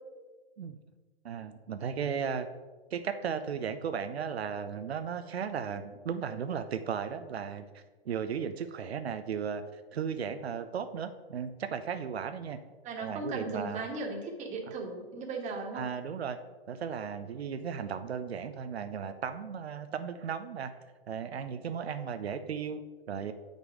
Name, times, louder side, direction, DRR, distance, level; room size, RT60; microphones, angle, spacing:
voice 1, 1.2-2.5 2.9-12.6 13.0-13.9 15.7-16.4 16.7-20.8 21.1-23.3, right 7 dB, 90° right, 9 dB, 0.6 m, -36 dB
voice 2, 12.8-15.8, right 3 dB, 25° right, 1 dB, 1.4 m, -37 dB
7.3 x 5.3 x 4.8 m, 1.3 s
hypercardioid pair, 125°, 31 cm